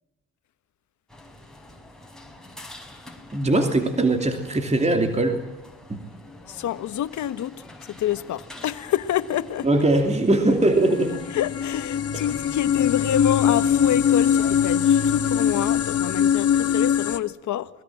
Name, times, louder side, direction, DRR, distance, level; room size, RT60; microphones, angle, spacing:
sound 1, 1.1-16.0, left 2 dB, ahead, 5.3 m, -46 dB
voice 1, 3.3-5.5 5.9-6.1 9.6-11.2 12.1-12.3, right 2 dB, 20° right, 2.8 m, -21 dB
voice 2, 6.5-7.6 7.8-9.7 11.3-17.7, left 11 dB, 70° left, 1.4 m, -27 dB
sound 2, 10.4-17.2, left 8 dB, 50° left, 1.5 m, -22 dB
28.5 x 21.0 x 7.5 m
cardioid pair, 90°, 30 cm